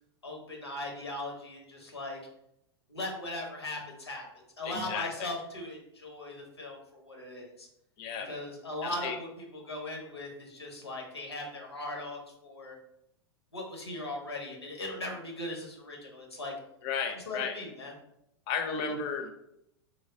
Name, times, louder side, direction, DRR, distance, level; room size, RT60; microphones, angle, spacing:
voice 1, 0.2-2.2 2.9-4.3 4.6-7.7 8.2-12.8 13.5-16.5 17.1-17.9, left 1 dB, 80° left, 1 dB, 0.9 m, -39 dB
voice 2, 4.7-5.3 8.0-8.3 8.8-9.2 16.8-17.5 18.5-19.3, left 6 dB, 40° left, 4 dB, 0.6 m, -34 dB
3.4 x 2.0 x 3.6 m, 0.80 s
figure-of-eight pair, 95°, 13 cm